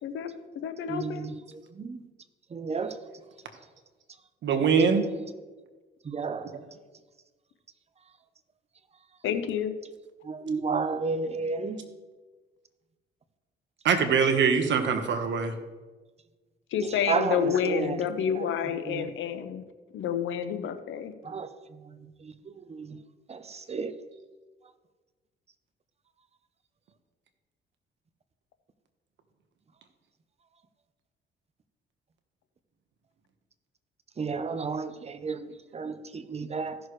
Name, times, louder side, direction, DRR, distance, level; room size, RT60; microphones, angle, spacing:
voice 1, 0.0-1.3 9.2-9.7 16.7-19.6 19.9-21.1, left 8 dB, 75° left, 0.8 m, -29 dB
voice 2, 0.9-2.0 2.5-3.0 6.0-6.6 10.2-11.8 16.8-18.0 18.3-18.5 18.8-19.1 21.2-21.5 21.8-23.0 23.3-23.9 34.2-36.8, right 4 dB, 30° right, 0.8 m, -32 dB
voice 3, 4.4-5.1 13.8-15.5, right 6 dB, 65° right, 1.3 m, -23 dB
15.5 x 6.4 x 3.2 m
cardioid pair, 90°, 20 cm